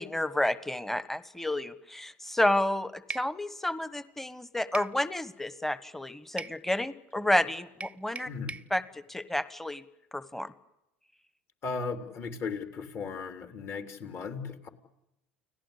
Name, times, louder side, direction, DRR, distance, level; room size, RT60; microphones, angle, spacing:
voice 1, 0.0-8.3 8.7-9.8 10.1-10.5, left 1 dB, 5° left, 14 dB, 1.4 m, -30 dB
sound 1, 3.1-3.3 4.7-5.0 6.4-6.6 7.8-8.7, right 4 dB, 20° right, 0.8 m, -39 dB
voice 2, 11.6-14.7, left 4 dB, 45° left, 6 dB, 3.7 m, -36 dB
30.0 x 18.0 x 8.4 m, 0.87 s
hypercardioid pair, 80°, 6 cm